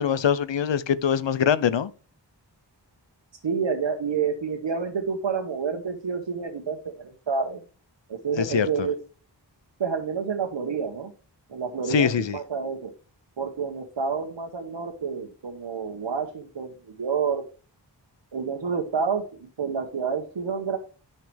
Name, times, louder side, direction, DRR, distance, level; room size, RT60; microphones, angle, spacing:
voice 1, 0.0-1.9 8.4-8.7 11.9-12.4, left 8 dB, 85° left, 0.6 m, -23 dB
voice 2, 3.4-7.6 8.1-9.0 9.8-11.1 11.5-12.9 13.4-17.4 18.3-20.8, right 5 dB, 85° right, 1.1 m, -29 dB
10.5 x 5.7 x 3.3 m
wide cardioid pair, 50°, 43 cm